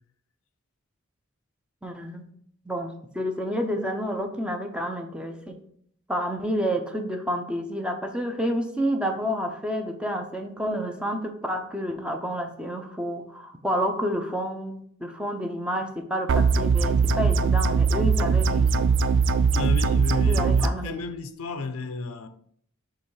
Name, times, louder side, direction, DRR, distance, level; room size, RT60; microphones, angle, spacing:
voice 1, 1.8-2.3 2.7-5.6 6.1-18.9 20.3-21.0, equal, 5° right, 0.6 m, -29 dB
sound 1, 16.3-20.7, right 5 dB, 60° right, 0.3 m, -21 dB
voice 2, 19.5-22.3, left 3 dB, 80° left, 0.6 m, -32 dB
6.8 x 3.1 x 4.8 m
head